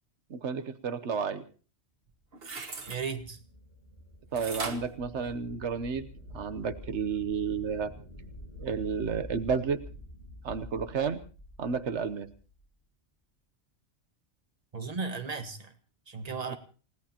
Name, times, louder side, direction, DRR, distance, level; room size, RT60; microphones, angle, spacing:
voice 1, 0.3-1.4 4.3-6.1 6.3-7.9 8.6-9.8 10.4-11.2 11.6-12.3 16.5-16.6, right 6 dB, 85° right, 10 dB, 1.3 m, -31 dB
sound 1, 2.1-3.0 4.4-5.9 6.4-6.5, right 4 dB, 60° right, 1.7 m, -39 dB
sound 2, 2.5-12.6, left 1 dB, 65° left, 6.7 m, -47 dB
voice 2, 2.9-3.4 14.7-15.7 16.1-16.6, right 5 dB, 35° right, 7 dB, 1.6 m, -35 dB
29.0 x 17.0 x 2.9 m, 0.38 s
omnidirectional pair, 1.1 m